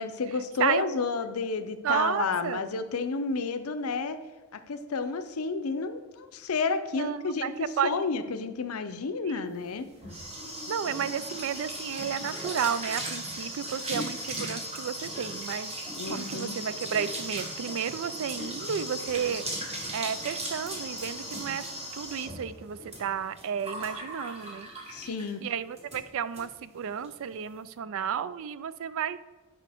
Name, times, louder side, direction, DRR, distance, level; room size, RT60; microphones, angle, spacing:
voice 1, 0.0-4.2 4.5-9.9 16.0-16.6 24.9-25.4, left 4 dB, 90° left, 9 dB, 0.6 m, -31 dB
voice 2, 0.6-0.9 1.8-2.7 6.9-7.9 10.7-15.7 16.1-21.6 21.9-24.7 25.4-29.2, right 8 dB, 65° right, 15 dB, 0.4 m, -32 dB
sound 1, 9.6-25.4 25.8-26.0 26.3-26.4 26.7-27.1, right 1 dB, 30° right, 1.6 m, -37 dB
9.9 x 5.3 x 3.5 m, 1.3 s
head